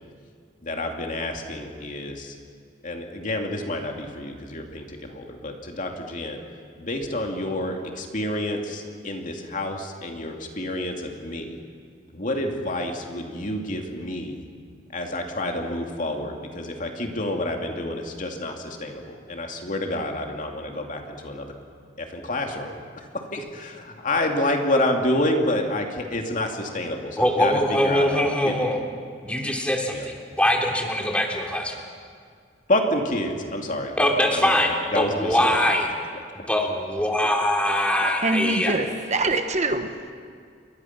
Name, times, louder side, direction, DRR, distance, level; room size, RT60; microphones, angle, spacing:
voice 1, 0.6-2.3 2.8-6.4 6.8-11.6 12.1-14.4 14.9-21.5 22.0-23.1 23.3-27.6 27.8-28.5 29.9-30.0 32.7-34.1 34.3-34.5 34.9-35.5, left 1 dB, 45° left, 2 dB, 2.7 m, -28 dB
voice 2, 27.2-28.8 29.2-31.8 34.0-35.9 36.5-38.8, left 1 dB, 5° left, 1 dB, 3.0 m, -22 dB
voice 3, 38.2-38.9 39.1-40.1, right 2 dB, 40° right, 7 dB, 1.2 m, -24 dB
29.0 x 23.0 x 6.0 m, 2.1 s
head